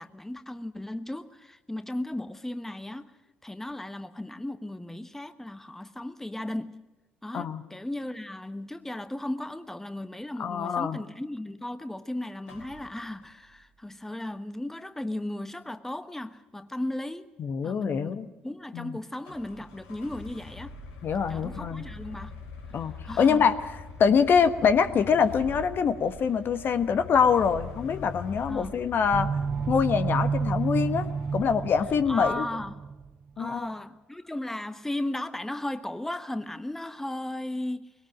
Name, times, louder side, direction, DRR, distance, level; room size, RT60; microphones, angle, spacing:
voice 1, 0.0-3.1 3.4-6.8 7.2-17.3 17.6-20.8 21.3-22.4 22.7-23.5 28.5-28.8 32.1-32.8 33.4-37.9, left 1 dB, 5° left, 1.2 m, -36 dB
voice 2, 10.4-11.0 17.4-18.3 18.7-19.0 21.0-21.8 22.7-29.3 29.7-31.1 31.3-32.5 33.4-33.7, left 6 dB, 50° left, 1.4 m, -24 dB
sound 1, 12.4-13.7 19.2-32.3, left 3 dB, 75° left, 3.8 m, -44 dB
sound 2, 29.1-33.1, right 5 dB, 40° right, 0.6 m, -30 dB
21.0 x 18.0 x 7.7 m
hypercardioid pair, 60°, 5 cm